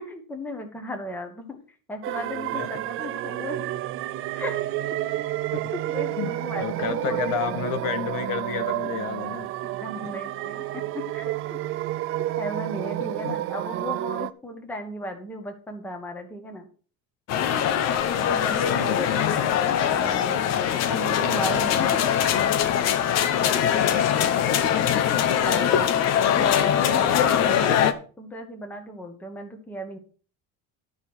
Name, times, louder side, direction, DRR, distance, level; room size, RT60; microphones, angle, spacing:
voice 1, 0.0-1.6 1.9-3.6 4.3-4.6 5.7-7.4 9.6-10.6 10.9-11.3 12.4-16.7 18.2-19.5 19.9-20.5 20.9-22.0 23.5-23.6 24.6-24.7 25.4-25.9 26.3-30.0, left 1 dB, 5° left, 1.4 m, -35 dB
sound 1, 2.0-14.3, right 14 dB, 40° right, 0.4 m, -30 dB
voice 2, 6.6-9.5 10.0-10.1 13.0-13.4 18.7-19.5 23.6-24.3, left 7 dB, 70° left, 1.6 m, -31 dB
sound 2, 17.3-27.9, left 9 dB, 45° left, 1.0 m, -22 dB
12.0 x 5.4 x 6.2 m
cardioid pair, 180°, 35 cm